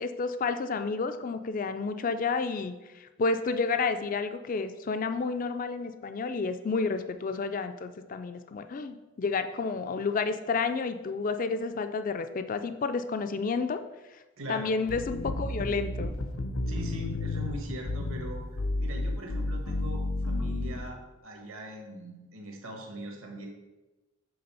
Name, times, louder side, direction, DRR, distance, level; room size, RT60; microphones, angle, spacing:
voice 1, 0.0-13.8 14.5-16.1, left 4 dB, 40° left, 9 dB, 0.3 m, -30 dB
voice 2, 14.4-14.8 16.7-21.0 21.2-23.5, right 1 dB, 70° right, 2 dB, 1.3 m, -41 dB
sound 1, 14.9-20.9, left 2 dB, 75° left, 0.7 m, -32 dB
6.8 x 3.6 x 5.4 m, 1.1 s
head